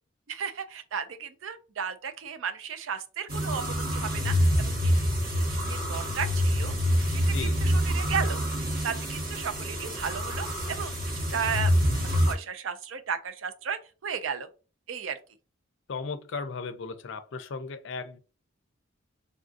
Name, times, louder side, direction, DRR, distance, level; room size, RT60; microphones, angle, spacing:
voice 1, 0.3-4.9 5.3-6.8 7.1-7.3 7.6-8.4 8.8-11.7 12.0-14.5 14.9-15.2, right 6 dB, 70° right, 0.4 m, -34 dB
sound 1, 3.3-12.3, equal, 45° right, 1.0 m, -26 dB
voice 2, 15.9-18.2, left 4 dB, 60° left, 0.4 m, -36 dB
3.5 x 2.5 x 2.5 m
head